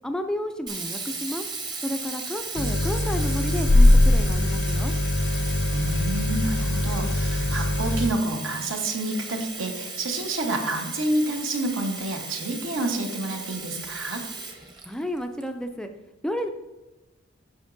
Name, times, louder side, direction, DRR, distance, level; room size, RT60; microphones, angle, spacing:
voice 1, 0.0-1.4 1.8-4.9 14.9-15.9 16.2-16.5, equal, 5° left, 6 dB, 0.3 m, -31 dB
Sink (filling or washing), 0.7-15.4, right 4 dB, 20° right, 0.8 m, -36 dB
sound 1, 2.6-8.1, left 1 dB, 60° left, 0.5 m, -21 dB
voice 2, 5.7-14.2, right 2 dB, 75° right, 3 dB, 1.1 m, -29 dB
8.5 x 5.8 x 2.6 m, 1.1 s
head